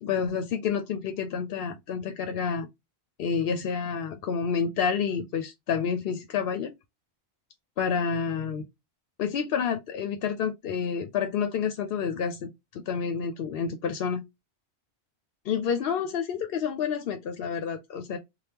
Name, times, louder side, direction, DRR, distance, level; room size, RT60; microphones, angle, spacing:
voice 1, 0.0-2.7 3.2-6.7 7.8-8.6 9.2-14.2 15.4-18.2, left 6 dB, 65° left, 0.7 m, -29 dB
3.4 x 2.3 x 2.8 m
omnidirectional pair, 1.1 m